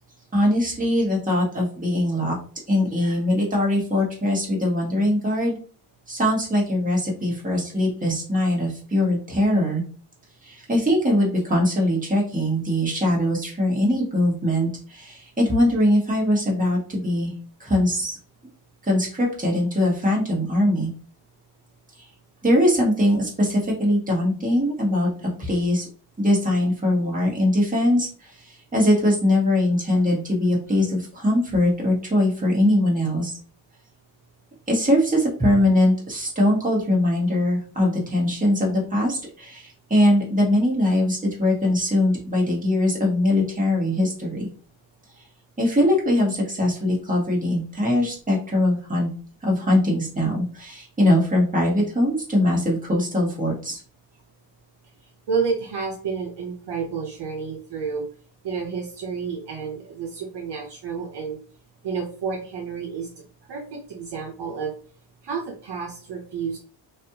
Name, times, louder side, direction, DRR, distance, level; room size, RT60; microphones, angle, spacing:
voice 1, 0.3-2.4 2.7-5.6 6.1-9.8 10.4-17.3 17.6-18.2 18.9-20.9 22.4-25.8 26.2-33.3 34.7-44.5 45.6-49.1 49.4-53.8, left 1 dB, 15° right, -3 dB, 1.5 m, -21 dB
voice 2, 55.3-58.0 58.4-61.4 61.8-63.1 63.5-64.7 65.2-66.6, right 5 dB, 55° right, -1 dB, 0.8 m, -30 dB
3.2 x 2.5 x 2.8 m, 0.41 s
cardioid pair, 100°, 49 cm